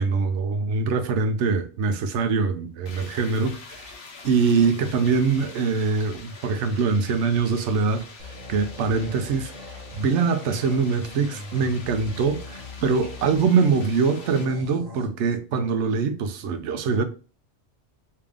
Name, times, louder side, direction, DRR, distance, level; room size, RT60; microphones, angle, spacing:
voice 1, 0.0-3.9 4.2-8.0 8.5-17.0, right 5 dB, 85° right, 0.9 m, -23 dB
sound 1, 2.9-14.5, left 4 dB, 60° left, 0.9 m, -45 dB
sound 2, 8.2-15.1, left 2 dB, 45° right, 0.9 m, -41 dB
3.4 x 2.8 x 3.5 m
omnidirectional pair, 1.2 m